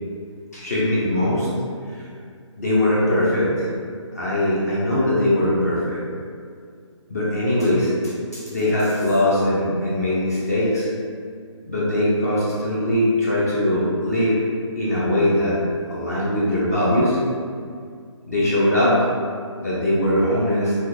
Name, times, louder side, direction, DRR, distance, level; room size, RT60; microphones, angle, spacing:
voice 1, 0.5-1.5 1.9-2.0 2.6-3.6 4.1-6.0 7.1-10.9 11.7-14.5 14.8-15.6 15.9-17.2 18.3-19.1 19.6-20.7, left 1 dB, 30° left, -8 dB, 0.5 m, -21 dB
3.5 x 2.7 x 2.5 m, 2.2 s
hypercardioid pair, 175°, 16 cm